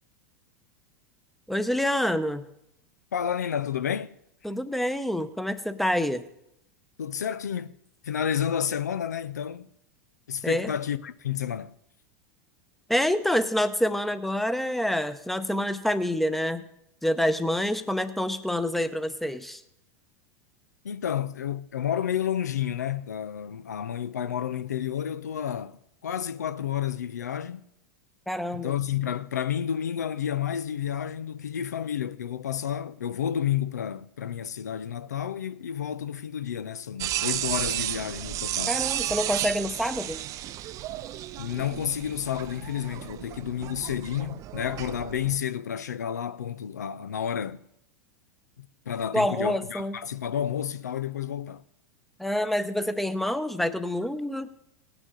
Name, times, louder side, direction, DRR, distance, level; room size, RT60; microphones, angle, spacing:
voice 1, 1.5-2.4 4.4-6.3 10.4-10.7 12.9-16.7 17.0-19.6 28.3-28.7 38.7-40.2 49.1-50.0 52.2-54.5, equal, ahead, 0.8 m, -27 dB
voice 2, 3.1-4.2 7.0-7.7 8.0-9.7 10.3-11.7 20.8-25.8 26.0-27.6 28.5-38.8 41.4-47.7 48.6-51.6, left 9 dB, 90° left, 0.5 m, -30 dB
sound 1, 37.0-45.4, right 13 dB, 40° right, 0.5 m, -33 dB
18.0 x 9.0 x 3.8 m
hypercardioid pair, 100°, 9 cm